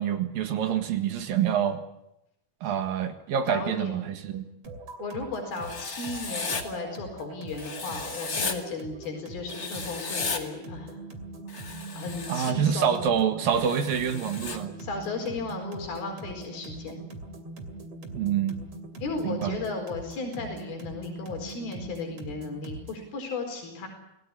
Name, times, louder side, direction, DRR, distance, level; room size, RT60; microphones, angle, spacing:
voice 1, 0.0-1.8 2.6-4.5 12.3-14.7 18.1-18.6 19.2-19.6, right 8 dB, 70° right, 7 dB, 3.4 m, -26 dB
voice 2, 3.5-4.0 5.0-11.0 11.9-13.1 14.8-17.1 19.0-23.9, left 3 dB, 80° left, 2 dB, 6.5 m, -35 dB
sound 1, 4.6-23.1, right 2 dB, 45° right, 3.5 m, -42 dB
Writing, 5.6-6.6 7.6-8.5 9.5-10.4 11.5-12.5 13.5-14.6, left 4 dB, 30° left, 2.0 m, -34 dB
27.0 x 18.0 x 9.9 m, 0.86 s
omnidirectional pair, 4.3 m